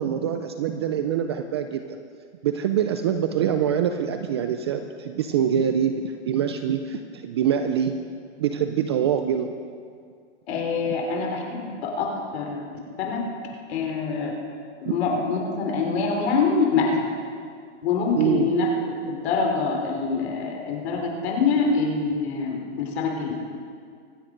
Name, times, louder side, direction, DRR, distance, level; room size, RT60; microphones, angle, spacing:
voice 1, 0.0-1.8 2.4-8.0 8.4-9.5 14.9-15.0 18.2-18.5, right 8 dB, 25° right, 8 dB, 0.3 m, -24 dB
voice 2, 10.5-12.6 13.0-13.2 13.7-14.3 14.8-17.0 17.8-23.3, left 4 dB, 55° left, 1 dB, 3.9 m, -25 dB
25.0 x 9.8 x 5.1 m, 2.2 s
hypercardioid pair, 150°, 37 cm